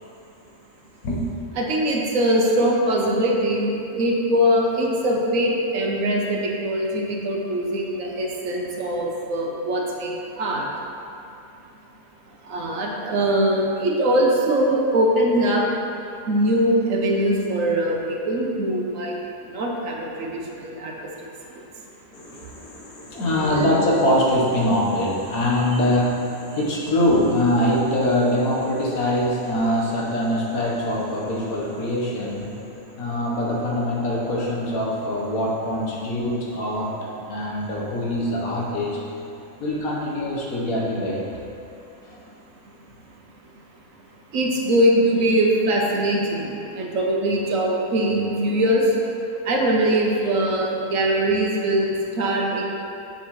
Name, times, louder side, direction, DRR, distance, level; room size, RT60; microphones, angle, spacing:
voice 1, 1.6-10.7 12.5-15.7 16.3-19.1 19.5-20.9 23.4-23.7 44.3-48.9 49.5-52.6, right 1 dB, 70° right, -1 dB, 1.2 m, -22 dB
voice 2, 22.1-39.1 39.6-41.3 42.1-42.2, left 1 dB, 85° left, -4 dB, 1.6 m, -23 dB
7.1 x 6.9 x 3.1 m, 2.6 s
omnidirectional pair, 1.5 m